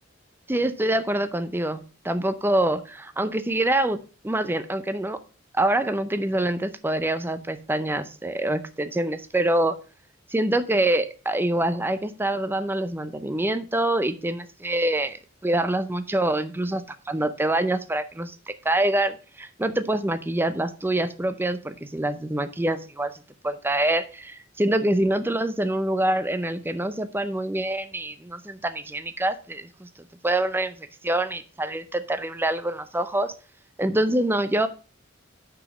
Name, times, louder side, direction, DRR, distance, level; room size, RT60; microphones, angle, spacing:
voice 1, 0.5-4.0 4.2-5.2 5.5-9.8 10.3-15.2 15.4-18.4 18.6-23.1 23.4-29.9 30.2-33.3 33.8-34.7, right 1 dB, 10° right, 11 dB, 0.5 m, -25 dB
6.1 x 6.0 x 6.0 m, 0.36 s
head